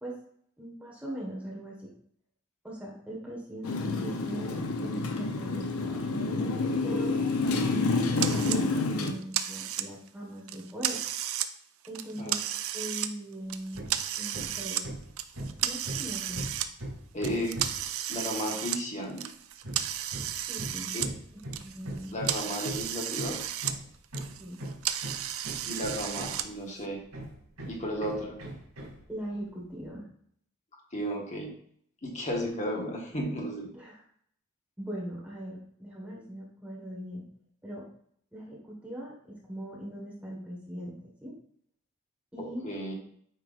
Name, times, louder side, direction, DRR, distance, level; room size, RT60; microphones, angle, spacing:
voice 1, 0.6-1.9 2.6-6.0 6.8-7.2 7.7-11.0 11.9-12.4 12.7-14.8 15.6-16.4 20.5-20.9 21.5-22.1 24.4-24.6 29.1-30.1 33.7-34.0 34.8-37.3 37.6-37.8 38.3-41.3 42.3-42.6, equal, 5° right, -4 dB, 1.5 m, -40 dB
Motorcycle, 3.6-9.1, left 3 dB, 85° left, 0.8 m, -28 dB
sound 1, 8.2-8.6 9.0-10.1 10.5-11.5 11.8-13.1 13.5-14.9 15.2-16.7 17.2-21.1 21.4-23.8 24.0-26.4, right 11 dB, 70° right, 0.5 m, -33 dB
Hammer, 13.7-14.0 14.3-17.9 19.6-26.6 27.1-29.0, right 1 dB, 85° right, 2.7 m, -40 dB
voice 2, 17.1-17.6 18.1-19.3 20.9-21.1 22.1-23.4 25.7-27.0 27.7-28.4 30.9-31.6 32.0-33.7 42.4-43.0, equal, 35° left, 0 dB, 1.5 m, -34 dB
8.8 x 4.6 x 2.5 m, 0.64 s
head